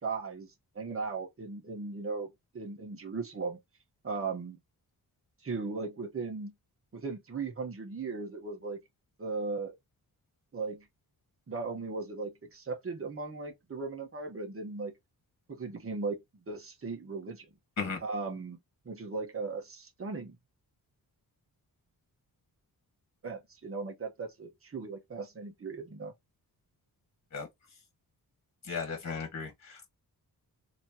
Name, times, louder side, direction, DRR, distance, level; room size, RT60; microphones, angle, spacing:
voice 1, 0.0-3.6 4.0-4.6 5.4-6.5 6.9-8.8 9.2-9.7 10.5-10.9 11.5-14.9 15.5-16.2 16.5-17.5 18.0-18.6 18.8-20.4 23.2-26.1, right 4 dB, 35° right, 1.2 m, -37 dB
voice 2, 28.6-29.9, left 5 dB, 45° left, 1.7 m, -36 dB
4.2 x 3.1 x 2.8 m
wide cardioid pair, 110°, 38 cm